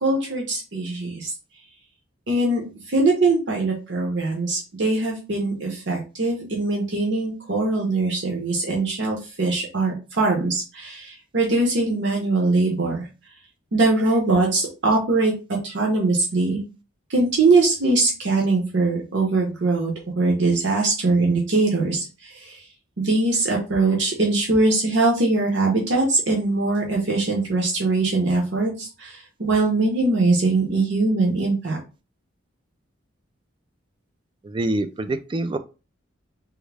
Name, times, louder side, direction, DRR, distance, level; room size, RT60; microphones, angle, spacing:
voice 1, 0.0-1.3 2.3-2.6 2.9-13.1 13.7-15.3 15.6-16.6 17.1-22.6 23.0-31.8, right 3 dB, 65° right, -1 dB, 0.8 m, -22 dB
voice 2, 34.4-35.6, right 2 dB, 25° right, 10 dB, 0.3 m, -25 dB
3.6 x 2.1 x 3.3 m, 0.31 s
head